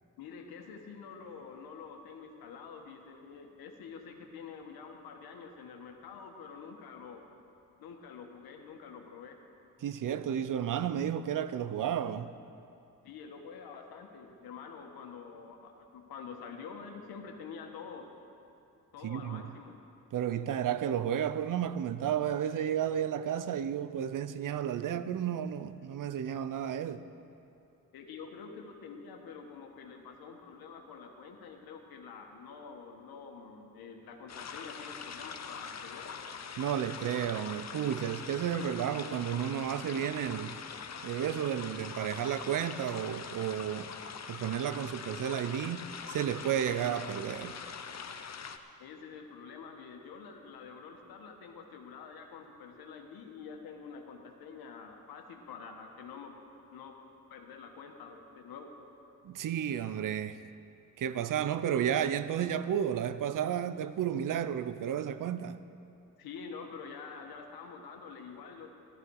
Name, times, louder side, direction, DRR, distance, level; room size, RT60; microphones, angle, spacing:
voice 1, 0.2-7.3 7.8-9.4 13.0-18.1 18.9-19.8 27.9-36.1 48.8-56.4 56.7-57.0 57.3-58.7 66.2-68.7, left 5 dB, 80° left, 1.4 m, -47 dB
voice 2, 9.8-12.3 19.0-19.4 20.1-27.0 36.6-40.6 41.0-44.0 44.3-47.6 59.2-60.4 61.0-65.6, right 9 dB, 60° right, 0.7 m, -32 dB
sound 1, 34.3-48.6, left 6 dB, 45° left, 0.9 m, -43 dB
14.0 x 13.0 x 4.7 m
supercardioid pair, 55°, 36 cm